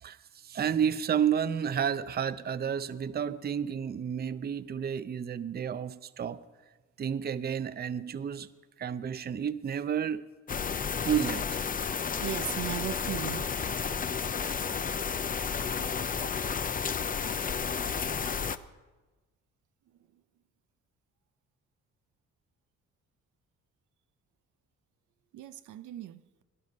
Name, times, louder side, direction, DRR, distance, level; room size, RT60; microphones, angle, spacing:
voice 1, 0.0-6.4 7.0-8.5 8.8-10.3 11.0-11.6, right 8 dB, 30° right, 0.6 m, -31 dB
sound 1, 10.5-18.6, left 6 dB, 30° left, 0.6 m, -32 dB
voice 2, 12.2-13.5 25.3-26.2, right 13 dB, 75° right, 0.7 m, -37 dB
18.0 x 11.0 x 5.4 m
cardioid pair, 90°, 30 cm